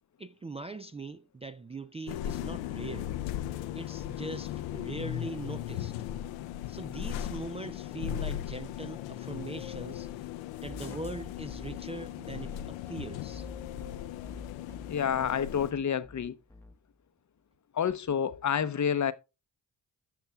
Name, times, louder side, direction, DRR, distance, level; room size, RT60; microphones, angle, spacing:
voice 1, 0.2-3.2 3.7-6.0 6.7-10.1 10.6-13.5, right 2 dB, 15° right, 0.4 m, -41 dB
sound 1, 2.1-15.7, left 12 dB, 90° left, 0.6 m, -37 dB
sound 2, 10.6-16.7, left 2 dB, 5° left, 0.9 m, -48 dB
voice 2, 14.9-16.3 17.7-19.1, left 8 dB, 40° left, 0.7 m, -29 dB
16.0 x 5.9 x 2.3 m
supercardioid pair, 50°, 44 cm